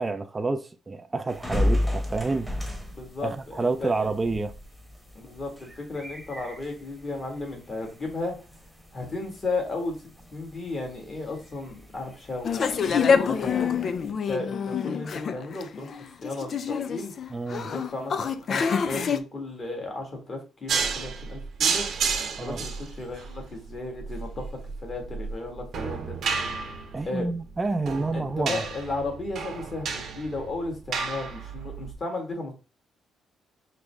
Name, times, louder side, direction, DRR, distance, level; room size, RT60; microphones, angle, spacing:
voice 1, 0.0-2.5 3.2-4.5 17.3-17.7 22.4-22.6 26.9-28.6, right 3 dB, 20° right, 0.3 m, -29 dB
sound 1, 1.3-14.1, left 1 dB, 5° left, 1.1 m, -35 dB
voice 2, 2.9-4.1 5.1-8.4 8.9-10.0 10.3-17.1 17.6-21.8 22.4-24.5 24.8-26.2 27.0-27.3 28.1-32.5, left 2 dB, 35° left, 1.5 m, -34 dB
sound 2, 12.4-19.2, left 6 dB, 55° left, 0.3 m, -26 dB
sound 3, 20.7-31.9, right 5 dB, 65° right, 0.8 m, -32 dB
4.9 x 2.0 x 3.3 m
cardioid pair, 90°, 0 cm